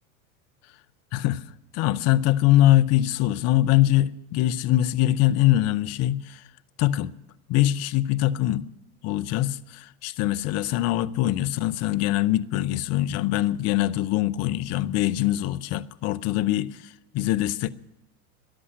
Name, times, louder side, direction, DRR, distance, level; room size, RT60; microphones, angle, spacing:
voice 1, 1.1-1.5 1.7-6.4 6.8-7.1 7.5-8.7 9.0-17.7, left 14 dB, 35° left, 0.6 m, -23 dB
14.0 x 11.0 x 8.7 m
hypercardioid pair, 95°, 45 cm